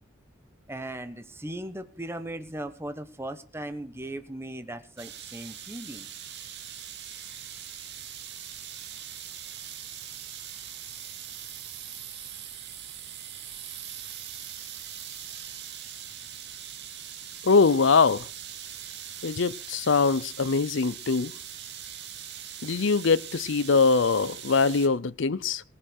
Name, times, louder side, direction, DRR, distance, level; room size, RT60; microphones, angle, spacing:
voice 1, 0.7-6.1, right 1 dB, 10° right, 1.2 m, -38 dB
sound 1, 5.0-24.9, right 9 dB, 60° right, 2.2 m, -41 dB
voice 2, 17.4-18.3 19.2-21.3 22.6-25.6, left 4 dB, 65° left, 0.6 m, -22 dB
19.0 x 7.9 x 6.4 m
head